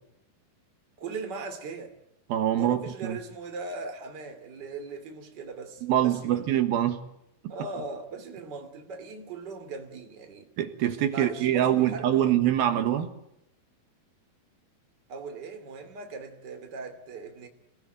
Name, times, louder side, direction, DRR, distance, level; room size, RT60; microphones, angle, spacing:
voice 1, 1.0-1.9 2.6-6.4 7.5-10.5 11.1-12.3 15.1-17.5, right 4 dB, 30° right, 2.8 m, -39 dB
voice 2, 2.3-3.2 5.8-7.0 7.4-7.5 10.6-13.1, right 11 dB, 75° right, 3.2 m, -24 dB
27.5 x 18.5 x 9.0 m
omnidirectional pair, 4.4 m